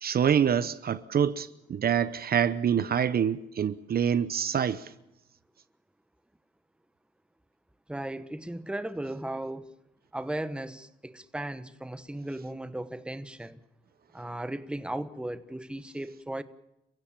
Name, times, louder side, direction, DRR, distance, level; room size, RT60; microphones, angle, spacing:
voice 1, 0.0-4.9, right 8 dB, 50° right, 0.9 m, -26 dB
voice 2, 7.9-9.7 10.1-13.6 14.1-16.4, right 1 dB, 5° right, 1.1 m, -36 dB
29.0 x 16.0 x 7.4 m
cardioid pair, 90°, 20 cm